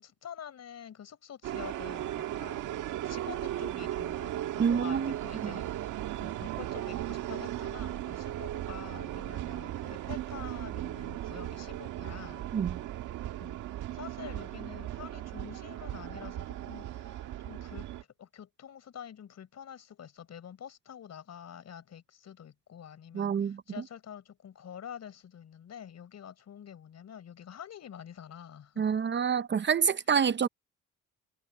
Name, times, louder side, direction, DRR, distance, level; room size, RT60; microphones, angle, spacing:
voice 1, 0.0-5.6 6.2-12.4 13.4-17.9 18.2-29.3, left 9 dB, 60° left, 4.9 m, -47 dB
sound 1, 1.4-18.0, right 13 dB, 85° right, 1.6 m, -37 dB
voice 2, 4.6-5.1 5.4-5.5 12.5-12.8 23.1-23.6 28.8-30.5, right 7 dB, 35° right, 0.7 m, -27 dB
cardioid pair, 90°, 30 cm